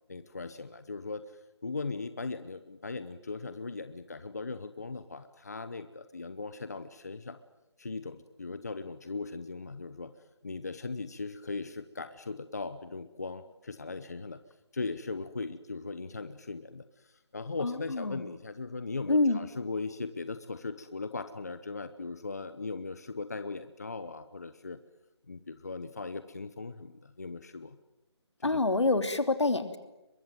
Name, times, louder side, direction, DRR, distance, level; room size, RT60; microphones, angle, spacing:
voice 1, 0.1-7.4 7.8-10.1 10.4-14.4 14.7-24.8 25.3-27.8 28.4-28.6, left 3 dB, 35° left, 11 dB, 0.9 m, -39 dB
voice 2, 17.6-18.2 19.1-19.4 28.4-29.8, left 3 dB, 80° left, 9 dB, 3.1 m, -26 dB
23.0 x 22.5 x 9.2 m, 0.97 s
figure-of-eight pair, 175°, 15 cm